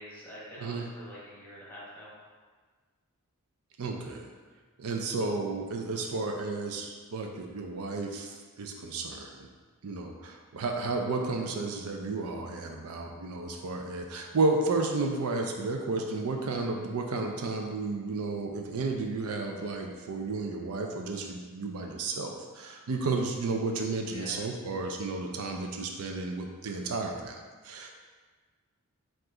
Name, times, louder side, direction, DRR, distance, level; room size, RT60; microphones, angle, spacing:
voice 1, 0.0-2.1 24.1-24.5, equal, 10° left, -8 dB, 1.2 m, -46 dB
voice 2, 3.8-4.3 4.8-9.5 9.8-27.4 27.6-27.9, right 3 dB, 70° right, 2 dB, 0.4 m, -32 dB
4.8 x 2.5 x 3.7 m, 1.5 s
head